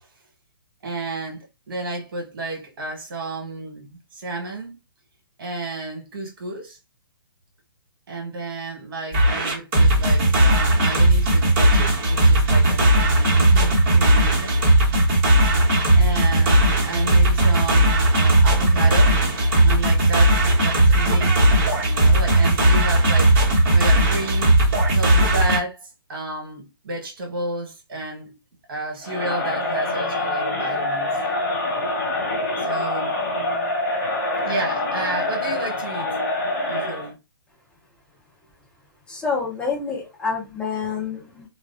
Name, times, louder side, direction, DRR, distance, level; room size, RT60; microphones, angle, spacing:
voice 1, 0.8-4.8 5.4-6.8 8.1-14.6 15.9-19.2 19.6-24.6 24.9-28.4 28.7-31.3 32.6-33.2 34.4-36.1 36.7-37.2, right 2 dB, 65° right, 1.2 m, -32 dB
sound 1, 9.1-25.6, right 1 dB, 30° right, 1.1 m, -17 dB
Crowd, 29.0-37.1, left 2 dB, 55° left, 1.1 m, -25 dB
voice 2, 39.1-41.4, left 5 dB, 10° left, 0.7 m, -27 dB
2.3 x 2.2 x 2.4 m
hypercardioid pair, 155°, 12 cm